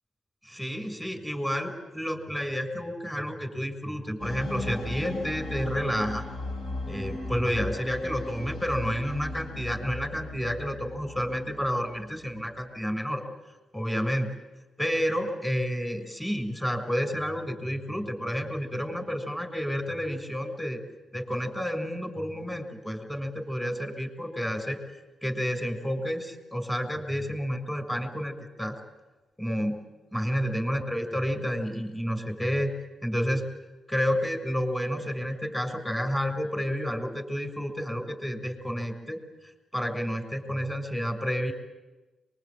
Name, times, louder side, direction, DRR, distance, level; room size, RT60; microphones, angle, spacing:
voice 1, 0.4-6.2 6.8-13.2 13.7-14.3 14.8-20.8 21.1-24.8 25.2-28.8 29.4-29.8 30.1-32.7 33.0-33.5 33.9-39.2 39.7-41.5, equal, 10° left, 6 dB, 6.4 m, -30 dB
sound 1, 4.2-12.3, left 2 dB, 65° left, 4.0 m, -37 dB
23.5 x 23.0 x 8.9 m, 1.1 s
supercardioid pair, 55°, 0 cm